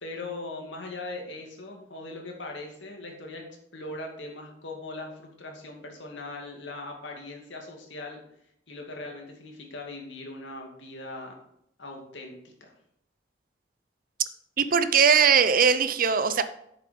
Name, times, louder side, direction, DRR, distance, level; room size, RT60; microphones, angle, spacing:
voice 1, 0.0-3.4 3.7-8.2 8.7-11.4 11.8-12.7, left 2 dB, 80° left, 1 dB, 2.3 m, -40 dB
voice 2, 14.6-16.4, right 6 dB, 50° right, 12 dB, 0.7 m, -20 dB
8.6 x 7.2 x 5.2 m, 0.74 s
head